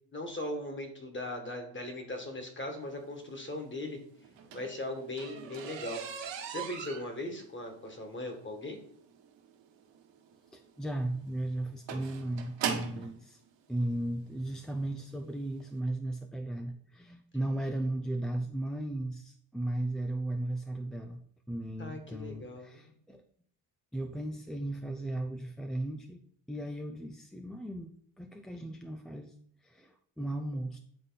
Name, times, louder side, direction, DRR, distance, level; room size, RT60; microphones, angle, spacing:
voice 1, 0.1-4.0 4.5-6.0 6.5-8.8 21.8-22.9, left 1 dB, 25° left, 4 dB, 1.9 m, -39 dB
sound 1, 4.2-13.1 14.0-14.1 14.7-14.9 15.2-15.3 15.6-15.7, right 7 dB, 60° right, 1.5 m, -40 dB
voice 2, 10.5-13.4 13.7-21.2 21.5-23.2 23.9-26.2 26.5-29.3 29.6-30.8, right 1 dB, ahead, 3 dB, 0.4 m, -36 dB
9.6 x 3.7 x 4.1 m, 0.63 s
cardioid pair, 90°, 48 cm